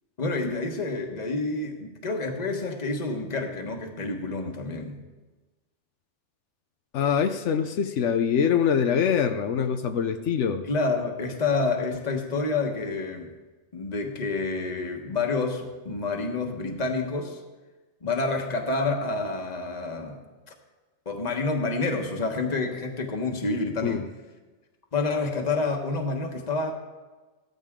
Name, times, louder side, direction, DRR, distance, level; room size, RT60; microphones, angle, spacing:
voice 1, 0.2-5.0 10.6-13.3 13.7-17.4 18.0-20.2 21.0-24.0 24.9-26.7, left 3 dB, 35° left, 3 dB, 1.4 m, -28 dB
voice 2, 6.9-10.6 23.8-24.1, left 7 dB, 85° left, 7 dB, 1.0 m, -24 dB
16.5 x 13.5 x 3.7 m, 1.2 s
omnidirectional pair, 1.2 m